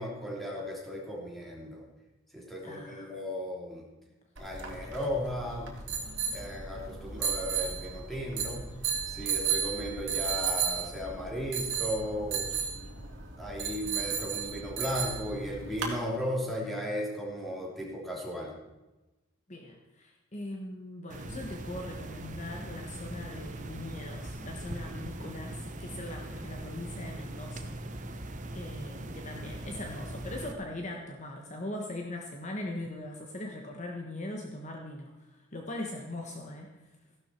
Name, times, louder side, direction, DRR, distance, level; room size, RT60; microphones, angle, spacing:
voice 1, 0.0-1.8 2.3-3.8 4.4-5.7 6.3-8.7 9.1-12.5 13.4-18.5, equal, ahead, -4 dB, 3.2 m, -35 dB
voice 2, 2.6-3.1 19.5-28.2 28.5-36.8, left 1 dB, 35° left, 1 dB, 1.3 m, -41 dB
sound 1, 4.4-16.0, right 6 dB, 60° right, 2.8 m, -34 dB
sound 2, 21.1-30.5, right 1 dB, 40° right, 1.0 m, -40 dB
15.0 x 12.0 x 4.5 m, 1.1 s
head